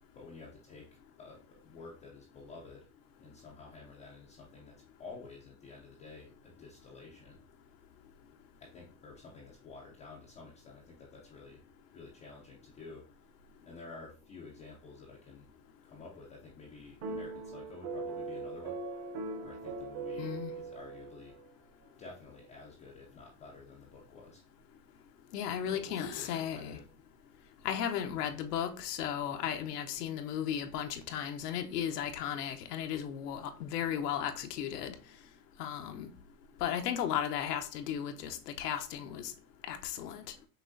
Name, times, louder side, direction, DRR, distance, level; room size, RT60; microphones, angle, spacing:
voice 1, 0.1-2.9 3.2-7.4 8.6-11.6 11.9-13.1 13.6-15.5 15.8-18.8 19.4-21.4 22.0-24.4 25.7-26.9, left 3 dB, 15° left, 0.3 m, -51 dB
sound 1, 17.0-21.5, right 3 dB, 35° right, 0.7 m, -40 dB
voice 2, 20.2-20.5 25.3-26.8 27.6-34.9 35.6-36.1 36.6-39.3 39.7-40.2, left 9 dB, 85° left, 0.8 m, -35 dB
sound 2, 22.0-24.6 25.2-25.5 25.8-27.8, left 4 dB, 45° left, 0.7 m, -53 dB
6.0 x 2.5 x 2.5 m
supercardioid pair, 135°, 47 cm